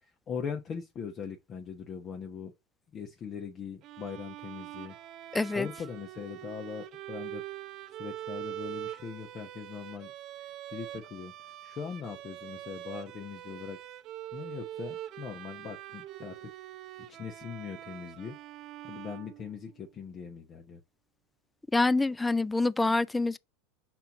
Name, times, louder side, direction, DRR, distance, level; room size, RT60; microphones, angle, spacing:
voice 1, 0.0-2.5 2.9-5.0 5.2-7.4 7.9-10.1 10.7-13.8 14.3-16.5 17.1-18.4 18.8-20.8, left 6 dB, 35° left, 1.0 m, -41 dB
Bowed string instrument, 3.8-19.9, right 13 dB, 50° right, 0.6 m, -44 dB
voice 2, 5.3-5.7 21.7-23.4, left 3 dB, 10° left, 0.3 m, -26 dB
5.7 x 4.4 x 3.9 m
supercardioid pair, 105°, 0 cm